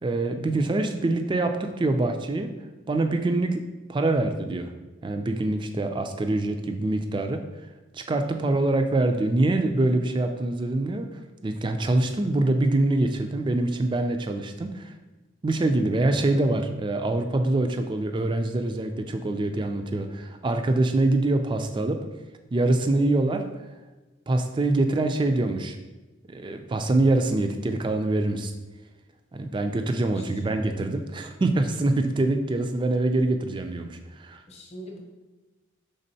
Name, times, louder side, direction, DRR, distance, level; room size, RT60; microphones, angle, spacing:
voice 1, 0.0-2.5 2.9-4.7 5.0-7.4 7.9-14.9 15.4-22.1 22.5-23.5 24.3-25.8 26.3-28.5 29.3-34.4, right 2 dB, 25° right, 7 dB, 0.3 m, -25 dB
voice 2, 30.1-30.5 34.5-35.0, equal, 35° left, -1 dB, 0.8 m, -43 dB
5.2 x 3.6 x 2.7 m, 1.2 s
head